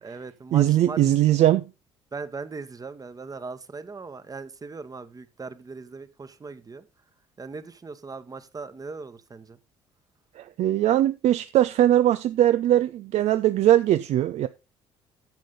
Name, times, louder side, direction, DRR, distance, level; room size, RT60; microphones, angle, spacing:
voice 1, 0.0-1.1 2.1-6.9 7.4-9.6, right 4 dB, 25° right, 1.2 m, -39 dB
voice 2, 0.5-1.7 10.4-14.5, right 12 dB, 55° right, 0.5 m, -20 dB
10.5 x 7.6 x 4.0 m
figure-of-eight pair, 50°, 14 cm